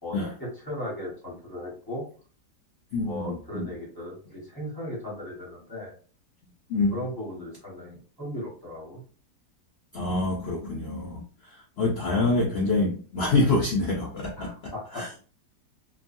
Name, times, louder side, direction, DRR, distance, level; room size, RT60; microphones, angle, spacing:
voice 1, 0.0-2.0 3.0-5.9 6.9-9.0 14.4-15.0, left 1 dB, 15° left, -4 dB, 1.1 m, -37 dB
voice 2, 2.9-3.7 6.7-7.0 9.9-15.2, left 2 dB, 70° left, -2 dB, 0.6 m, -26 dB
3.0 x 2.3 x 2.6 m, 0.40 s
omnidirectional pair, 1.7 m